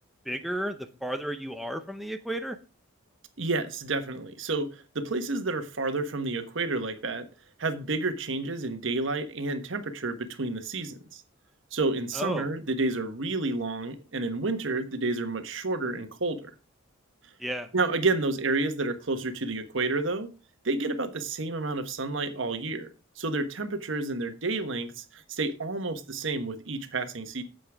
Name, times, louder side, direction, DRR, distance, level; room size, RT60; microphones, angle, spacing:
voice 1, 0.3-2.6 12.1-12.5 17.4-17.7, right 1 dB, ahead, 0.6 m, -33 dB
voice 2, 3.4-7.3 7.6-11.2 11.7-16.5 17.7-20.3 20.6-22.9 23.2-27.4, right 3 dB, 65° right, 1.2 m, -30 dB
9.8 x 7.8 x 3.5 m
head